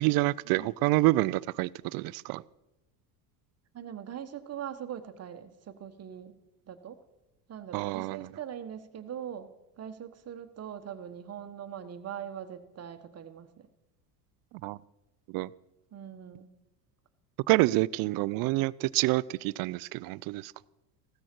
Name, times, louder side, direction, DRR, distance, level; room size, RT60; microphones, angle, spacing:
voice 1, 0.0-2.4 7.7-8.3 14.6-14.8 15.3-15.5 17.5-20.5, right 19 dB, 50° right, 20 dB, 0.5 m, -27 dB
voice 2, 3.7-6.4 6.7-7.0 7.5-13.7 15.9-16.6, right 9 dB, 30° right, 10 dB, 1.3 m, -42 dB
16.0 x 13.0 x 4.5 m, 0.96 s
hypercardioid pair, 90°, 47 cm